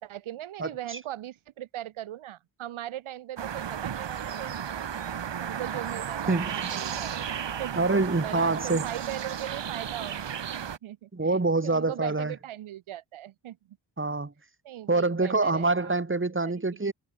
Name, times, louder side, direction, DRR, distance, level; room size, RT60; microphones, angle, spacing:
voice 1, 0.0-4.9 5.4-7.8 8.2-13.8 14.6-16.0 16.4-16.9, right 12 dB, 80° right, 5.1 m, -39 dB
voice 2, 0.6-1.0 6.3-6.7 7.8-8.8 11.1-12.3 14.0-14.3 14.9-16.9, right 3 dB, 25° right, 5.9 m, -26 dB
sound 1, 3.4-10.8, right 8 dB, 60° right, 3.9 m, -34 dB
supercardioid pair, 50°, 48 cm